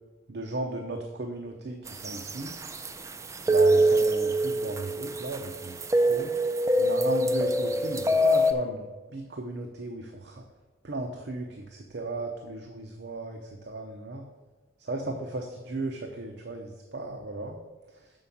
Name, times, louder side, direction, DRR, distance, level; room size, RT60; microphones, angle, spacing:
voice 1, 0.3-2.5 3.5-6.3 6.8-10.4 10.8-14.3 14.8-17.6 17.9-18.1, right 2 dB, 60° right, 3 dB, 0.8 m, -35 dB
sound 1, 1.9-8.5, right 1 dB, 15° right, 0.4 m, -25 dB
6.7 x 5.6 x 7.1 m, 1.2 s
head